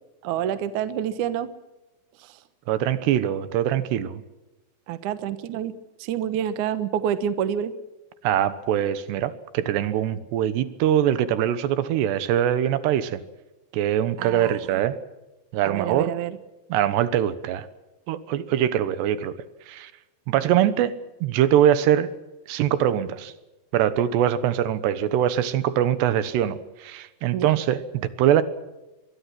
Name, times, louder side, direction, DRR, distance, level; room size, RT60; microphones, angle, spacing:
voice 1, 0.2-1.5 2.2-2.4 4.9-5.7 6.0-7.7 14.2-14.8 15.6-16.4 27.3-27.5, right 9 dB, 65° right, 12 dB, 2.2 m, -28 dB
voice 2, 2.7-4.2 8.2-13.2 13.7-15.0 15.5-16.1 16.7-17.7 18.1-19.3 19.7-19.9 20.3-20.9 21.2-22.1 22.5-23.3 23.7-28.4, right 11 dB, 85° right, 13 dB, 3.3 m, -23 dB
24.5 x 22.0 x 6.0 m, 1.0 s
omnidirectional pair, 4.8 m